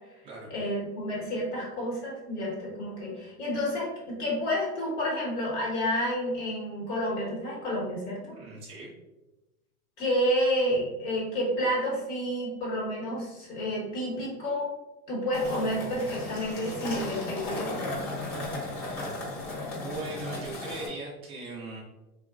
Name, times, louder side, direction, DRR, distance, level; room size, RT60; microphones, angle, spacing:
voice 1, 0.5-8.2 10.0-14.7 15.1-18.1, equal, 50° left, -5 dB, 1.2 m, -30 dB
voice 2, 8.2-8.9 19.6-21.8, right 2 dB, 15° right, -4 dB, 0.3 m, -39 dB
sound 1, 15.3-20.9, left 2 dB, 30° left, 1.0 m, -35 dB
2.8 x 2.3 x 2.3 m, 1.0 s
hypercardioid pair, 125°, 45 cm